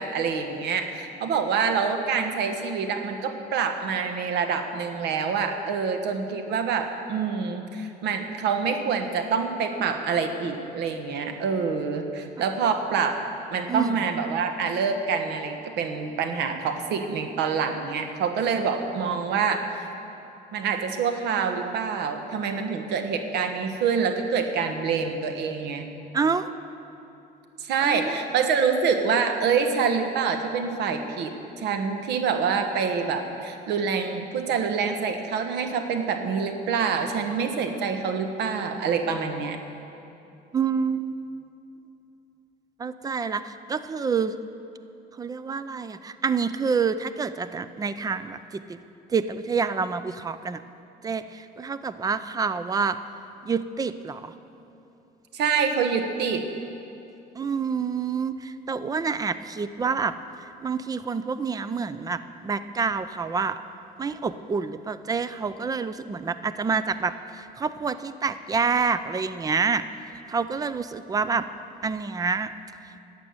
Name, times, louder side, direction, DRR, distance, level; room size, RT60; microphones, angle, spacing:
voice 1, 0.0-13.2 13.5-19.6 20.5-25.9 27.6-39.6 55.3-56.4, right 6 dB, 80° right, 6 dB, 1.2 m, -26 dB
voice 2, 26.1-26.5 27.8-28.2 40.5-41.1 42.8-44.4 45.2-48.8 49.1-50.6 51.0-53.0 53.4-54.3 57.4-60.1 60.6-63.6 64.0-69.8 70.3-71.5 71.8-72.5, right 5 dB, 20° right, 13 dB, 0.5 m, -27 dB
11.5 x 7.5 x 9.5 m, 2.9 s
cardioid pair, 110°, 17 cm